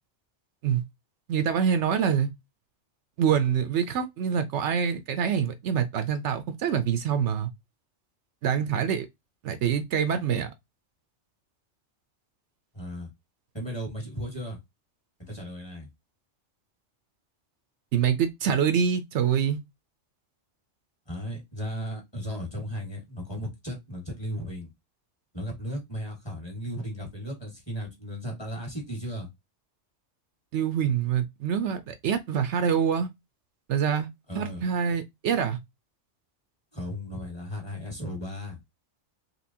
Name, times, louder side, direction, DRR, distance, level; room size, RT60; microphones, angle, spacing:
voice 1, 1.3-2.3 3.2-7.5 8.4-9.1 9.4-10.5 17.9-19.6 30.5-33.1 33.7-34.1 34.3-35.6, right 8 dB, 75° right, 0.9 m, -25 dB
voice 2, 12.7-13.1 13.5-14.6 15.2-15.9 21.1-24.7 25.3-29.3 34.3-34.6 36.7-38.6, equal, 20° left, 1.8 m, -35 dB
4.2 x 3.2 x 2.7 m
omnidirectional pair, 1.2 m